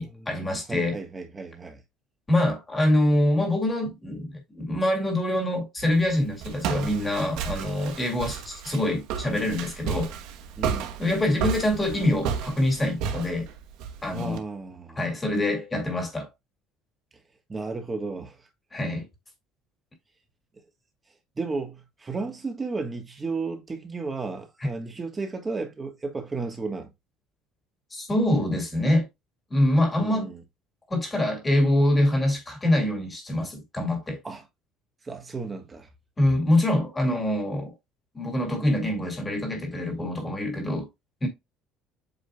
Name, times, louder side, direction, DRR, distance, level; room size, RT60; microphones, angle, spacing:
voice 1, 0.0-1.0 2.3-10.1 11.0-13.5 14.0-14.4 14.9-16.3 18.7-19.1 24.6-24.7 27.9-29.1 29.5-30.3 30.9-34.2 36.2-37.7 38.1-40.9 41.2-41.3, left 1 dB, 10° left, 2.1 m, -25 dB
voice 2, 0.7-1.8 10.6-10.9 14.1-15.0 17.5-18.4 21.4-26.9 30.0-30.4 34.2-34.4 35.0-35.9, right 3 dB, 15° right, 1.4 m, -33 dB
Walk footsteps, 5.8-14.4, right 7 dB, 65° right, 1.0 m, -33 dB
8.1 x 5.0 x 2.3 m
cardioid pair, 170°, 0 cm